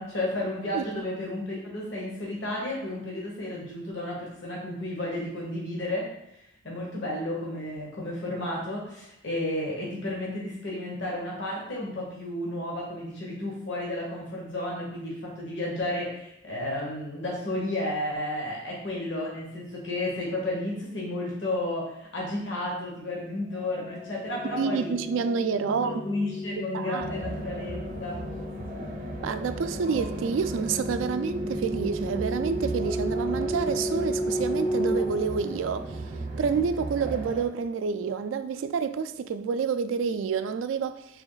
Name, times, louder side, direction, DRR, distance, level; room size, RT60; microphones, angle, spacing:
voice 1, 0.0-6.1 6.6-24.9 25.7-28.2, left 1 dB, 70° left, 1.0 m, -32 dB
voice 2, 0.7-1.0 24.6-26.0 26.7-27.1 29.2-35.9 36.4-41.1, right 6 dB, 85° right, 0.3 m, -28 dB
sound 1, 23.6-36.3, equal, 15° left, 0.3 m, -33 dB
sound 2, 27.0-37.5, right 2 dB, 45° right, 0.6 m, -37 dB
3.4 x 3.0 x 3.8 m
head